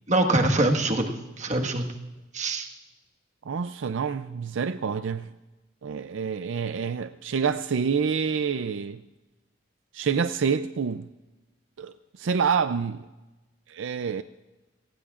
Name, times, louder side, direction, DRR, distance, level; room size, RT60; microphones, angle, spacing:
voice 1, 0.1-1.9 2.3-2.7, right 2 dB, 40° right, 1.5 m, -24 dB
voice 2, 3.5-5.3 5.8-9.0 9.9-11.1 11.8-13.0 13.7-14.2, right 6 dB, 80° right, 0.4 m, -27 dB
28.5 x 18.5 x 2.5 m
head